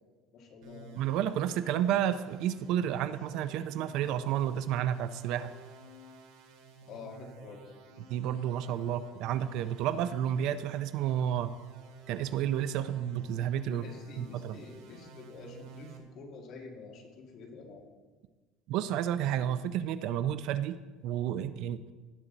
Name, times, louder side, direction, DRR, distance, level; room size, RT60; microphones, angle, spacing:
voice 1, 0.3-0.9 6.8-7.6 13.7-17.8, left 4 dB, 40° left, -1 dB, 2.2 m, -47 dB
sound 1, 0.6-16.0, right 4 dB, 85° right, 2.2 m, -52 dB
voice 2, 1.0-5.5 8.1-11.5 12.1-13.8 14.2-14.6 18.7-20.7 21.0-21.8, right 10 dB, 50° right, 13 dB, 0.4 m, -31 dB
17.5 x 7.4 x 4.0 m, 1.3 s
cardioid pair, 175°, 0 cm